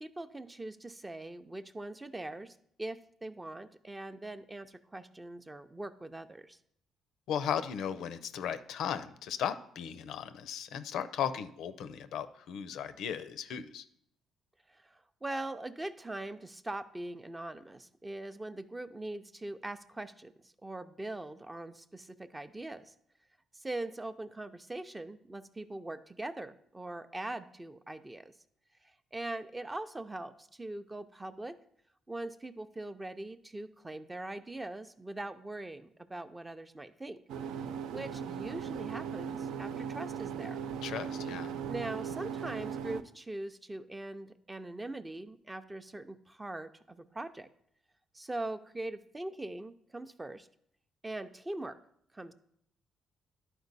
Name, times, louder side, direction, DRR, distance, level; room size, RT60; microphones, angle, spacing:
voice 1, 0.0-6.6 14.7-22.9 23.5-28.3 29.1-31.5 32.1-37.2 37.9-40.6 41.7-47.5 48.1-50.5 51.0-51.8 52.1-52.3, right 2 dB, 15° right, 10 dB, 0.5 m, -41 dB
voice 2, 7.3-13.8 40.8-41.5, left 8 dB, 80° left, 12 dB, 0.4 m, -36 dB
sound 1, 37.3-43.0, right 7 dB, 85° right, 0.4 m, -38 dB
11.0 x 4.4 x 4.0 m, 0.68 s
cardioid pair, 90°, 0 cm